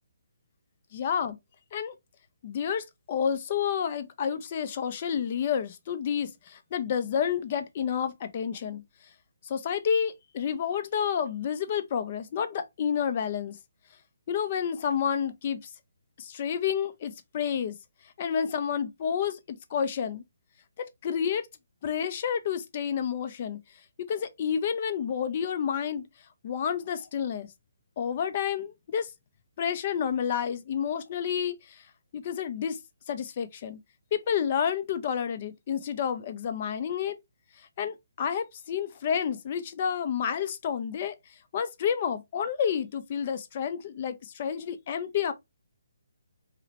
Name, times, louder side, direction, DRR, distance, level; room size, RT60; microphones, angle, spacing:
voice 1, 0.9-1.4 1.7-2.0 2.4-8.8 9.4-13.6 14.3-15.7 16.2-17.8 18.2-20.2 21.0-21.5 21.8-23.6 24.0-26.0 26.4-27.5 28.0-29.1 29.6-31.8 32.1-32.8 33.1-33.8 34.1-37.2 37.6-41.2 41.5-45.3, left 7 dB, 40° left, 0.4 m, -30 dB
2.8 x 2.0 x 2.7 m
figure-of-eight pair, 140°, 0 cm